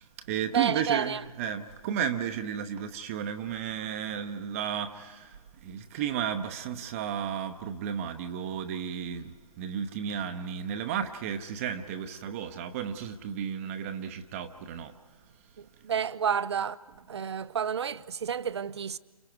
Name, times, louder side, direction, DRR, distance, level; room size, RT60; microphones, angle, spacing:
voice 1, 0.0-15.0, right 8 dB, 25° right, 0.9 m, -33 dB
voice 2, 0.5-1.2 15.6-16.8 17.1-19.0, right 7 dB, 50° right, 0.7 m, -30 dB
29.5 x 28.5 x 4.7 m
figure-of-eight pair, 140°, 18 cm